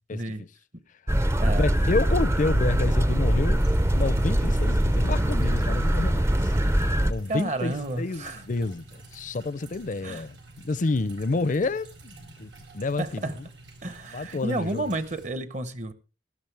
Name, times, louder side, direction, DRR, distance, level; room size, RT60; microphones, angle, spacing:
voice 1, 0.1-0.4 1.4-1.6 7.3-8.4 10.0-10.2 13.0-13.4 13.8-15.9, right 1 dB, 40° right, 1.0 m, -31 dB
sound 1, 1.1-7.1, equal, 15° right, 0.5 m, -22 dB
voice 2, 1.5-3.6 3.9-6.5 7.1-13.5 14.1-14.9, left 3 dB, 45° left, 0.5 m, -29 dB
sound 2, 3.5-15.3, right 2 dB, 85° right, 4.0 m, -49 dB
16.0 x 12.5 x 3.4 m
head